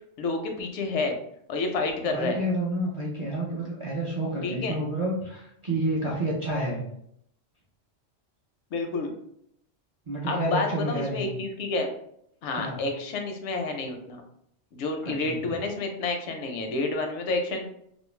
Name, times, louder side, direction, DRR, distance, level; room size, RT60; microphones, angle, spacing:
voice 1, 0.2-1.2 1.5-2.4 4.4-4.7 8.7-9.1 10.2-11.9 12.4-14.2 14.7-17.7, left 3 dB, 80° left, 4 dB, 0.9 m, -29 dB
voice 2, 2.0-6.9 10.1-11.3 12.5-12.8 15.0-15.4, right 1 dB, 45° right, -5 dB, 0.4 m, -29 dB
2.5 x 2.0 x 3.0 m, 0.72 s
omnidirectional pair, 1.2 m